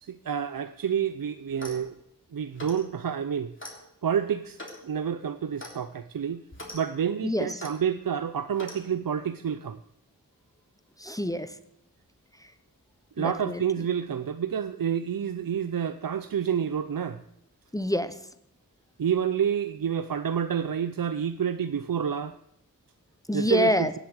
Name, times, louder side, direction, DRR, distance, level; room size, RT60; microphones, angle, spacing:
voice 1, 0.0-2.0 2.3-3.5 4.0-4.6 4.8-6.4 6.7-9.8 13.2-17.2 19.0-22.4 23.3-23.9, right 8 dB, 75° right, 12 dB, 0.6 m, -28 dB
Clock, 1.5-1.9 2.6-2.9 3.6-3.8 4.6-4.8 5.6-5.8 6.5-6.8 7.6-7.8 8.6-8.8, left 1 dB, 35° left, 3.2 m, -41 dB
voice 2, 7.2-7.6 11.0-11.6 13.2-13.6 17.7-18.2 23.3-23.9, left 1 dB, 10° left, 12 dB, 0.9 m, -27 dB
17.0 x 8.2 x 7.8 m, 0.76 s
wide cardioid pair, 65°, 34 cm